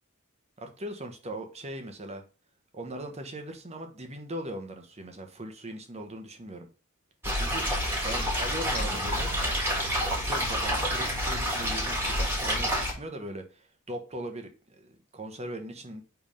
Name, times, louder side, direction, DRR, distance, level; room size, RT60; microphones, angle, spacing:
voice 1, 0.6-2.2 2.7-6.7 7.3-9.3 10.0-16.0, right 1 dB, 30° right, 5 dB, 1.1 m, -39 dB
sound 1, 7.2-12.9, equal, 10° right, 1.8 m, -28 dB
sound 2, 8.8-13.2, left 3 dB, 35° left, 1.2 m, -48 dB
5.4 x 3.5 x 5.1 m, 0.34 s
head